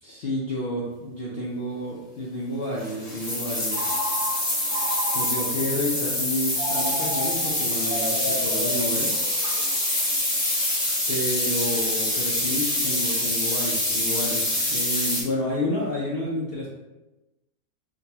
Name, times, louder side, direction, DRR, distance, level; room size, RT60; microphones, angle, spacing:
voice 1, 0.0-3.9 5.1-9.1 11.1-16.7, left 1 dB, 65° left, -6 dB, 0.6 m, -30 dB
sound 1, 2.8-15.2, left 1 dB, 25° left, 0.5 m, -25 dB
Telephone, 3.7-5.7 6.6-9.6, equal, 80° right, 1.6 m, -33 dB
4.9 x 2.3 x 2.7 m, 1.0 s
omnidirectional pair, 1.7 m